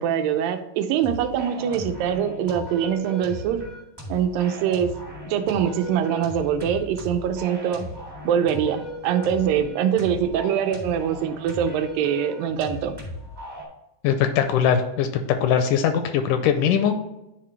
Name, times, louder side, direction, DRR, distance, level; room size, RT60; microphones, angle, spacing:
voice 1, 0.0-3.6 4.1-4.9 5.3-7.9 8.3-12.9, right 9 dB, 90° right, 8 dB, 2.4 m, -23 dB
sound 1, 1.0-13.6, equal, 15° right, 0.9 m, -37 dB
voice 2, 14.0-15.1 15.4-17.0, left 8 dB, 80° left, 7 dB, 1.9 m, -21 dB
10.5 x 4.0 x 3.2 m, 0.94 s
omnidirectional pair, 3.9 m